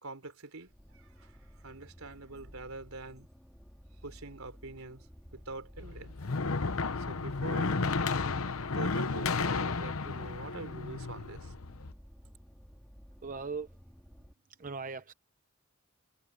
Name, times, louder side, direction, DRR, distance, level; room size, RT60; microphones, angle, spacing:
voice 1, 0.0-3.3 4.0-5.1 5.3-6.1 7.0-7.9 8.7-11.5, right 2 dB, 85° right, 3.8 m, -45 dB
sound 1, 0.7-14.3, equal, 5° left, 2.3 m, -54 dB
sound 2, 5.8-11.9, left 4 dB, 90° left, 1.0 m, -33 dB
voice 2, 13.2-13.7 14.6-15.1, right 4 dB, 40° right, 0.7 m, -38 dB
head